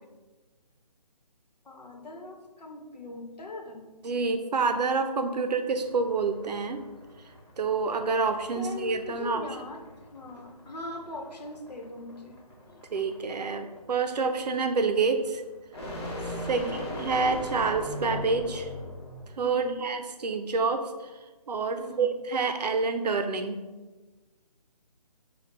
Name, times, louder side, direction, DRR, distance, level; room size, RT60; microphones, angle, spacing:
voice 1, 1.6-3.9 8.5-9.8 10.1-12.4 12.7-12.8 16.4-16.9 19.4-19.8 21.8-22.1, left 2 dB, 80° left, 2 dB, 0.9 m, -40 dB
voice 2, 4.0-6.8 7.6-9.4 12.9-15.4 16.5-16.6 17.0-18.7 19.4-20.8 21.5-23.6, right 4 dB, 80° right, 7 dB, 0.5 m, -27 dB
sound 1, 5.8-19.3, left 1 dB, 40° left, 1.0 m, -40 dB
5.2 x 2.3 x 4.1 m, 1.3 s
hypercardioid pair, 180°, 21 cm